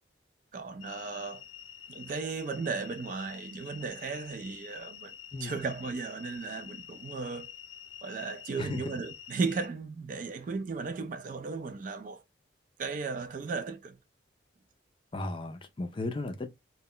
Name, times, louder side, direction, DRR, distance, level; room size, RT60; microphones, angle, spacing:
voice 1, 0.5-1.4 1.9-5.1 5.4-7.5 8.0-12.2 12.8-14.0, right 4 dB, 45° right, 0.3 m, -35 dB
sound 1, 0.8-9.7, left 9 dB, 90° left, 0.5 m, -48 dB
voice 2, 8.6-9.0 15.1-16.5, left 2 dB, 30° left, 0.3 m, -35 dB
2.2 x 2.0 x 3.7 m
head